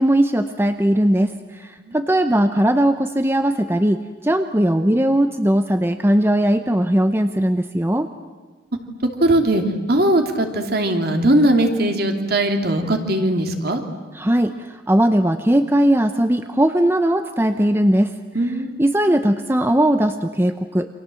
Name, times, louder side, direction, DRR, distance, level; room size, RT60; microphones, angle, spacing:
voice 1, 0.0-8.1 14.1-18.1 18.8-20.9, right 1 dB, 10° right, 8 dB, 0.7 m, -19 dB
voice 2, 9.2-9.6 9.9-13.8 18.3-18.8, right 1 dB, 55° right, 4 dB, 2.8 m, -19 dB
29.0 x 25.5 x 7.7 m, 1.3 s
head